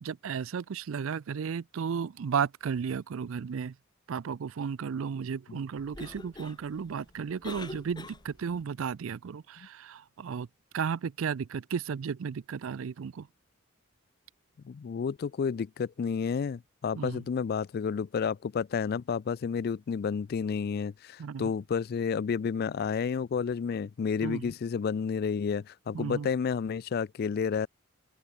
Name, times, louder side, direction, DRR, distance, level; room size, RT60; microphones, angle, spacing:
voice 1, 0.0-3.7 4.1-10.5 10.7-13.3 16.9-17.2 21.2-21.5 24.2-24.5 25.9-26.3, right 6 dB, 70° right, 0.4 m, -34 dB
Cough, 5.7-8.6, left 2 dB, 20° left, 1.2 m, -46 dB
voice 2, 14.6-27.7, left 6 dB, 45° left, 0.3 m, -31 dB
open air
head